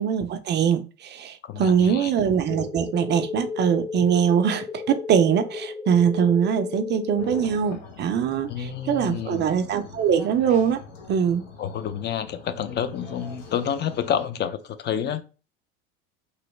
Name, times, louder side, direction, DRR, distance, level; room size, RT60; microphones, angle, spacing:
voice 1, 0.0-10.8 11.1-11.5, right 8 dB, 35° right, 0.4 m, -22 dB
voice 2, 1.4-2.1 8.5-9.5 11.6-15.2, left 9 dB, 35° left, 0.5 m, -29 dB
sound 1, 2.5-7.5, left 5 dB, 5° left, 0.8 m, -33 dB
sound 2, 7.2-14.2, left 4 dB, 85° left, 0.9 m, -44 dB
3.0 x 2.7 x 3.1 m
supercardioid pair, 100°, 30 cm